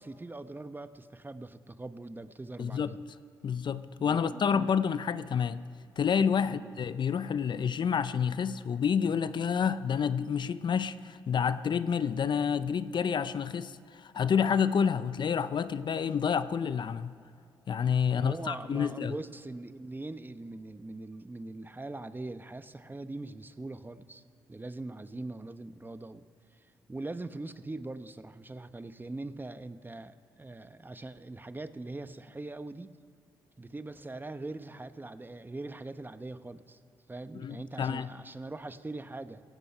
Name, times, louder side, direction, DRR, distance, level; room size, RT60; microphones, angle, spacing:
voice 1, 0.0-3.0 4.0-4.7 6.4-6.7 18.1-24.2 24.5-26.2 26.5-32.9 33.6-36.8 37.1-39.4, right 2 dB, 20° right, 1.0 m, -42 dB
voice 2, 2.6-3.0 3.4-5.6 6.0-17.1 17.7-19.2 37.3-38.1, left 7 dB, 55° left, 0.7 m, -29 dB
17.5 x 15.0 x 5.6 m
supercardioid pair, 45°, 9 cm